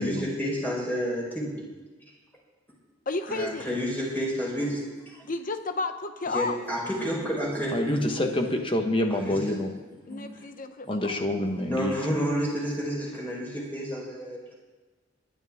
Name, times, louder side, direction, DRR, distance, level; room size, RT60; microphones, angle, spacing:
voice 1, 0.0-1.7 3.3-5.2 6.3-8.3 9.1-9.6 10.1-10.3 11.7-14.5, equal, 10° left, -4 dB, 4.5 m, -30 dB
voice 2, 3.1-3.7 5.2-6.6 10.1-11.2, left 3 dB, 45° left, 8 dB, 0.9 m, -32 dB
voice 3, 7.7-9.7 10.9-11.9, left 1 dB, 25° left, 4 dB, 1.3 m, -27 dB
21.0 x 11.0 x 3.6 m, 1.3 s
head